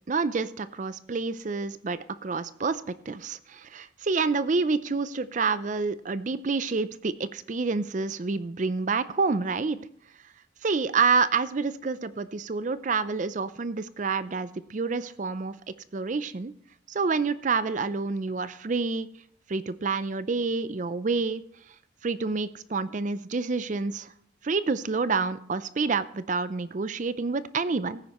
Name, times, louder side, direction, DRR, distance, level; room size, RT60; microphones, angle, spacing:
voice 1, 0.1-9.8 10.6-15.5 15.9-16.5 16.9-19.1 19.5-21.4 22.0-24.1 24.4-28.0, right 4 dB, 40° right, 15 dB, 0.4 m, -28 dB
15.5 x 9.5 x 3.0 m, 0.64 s
head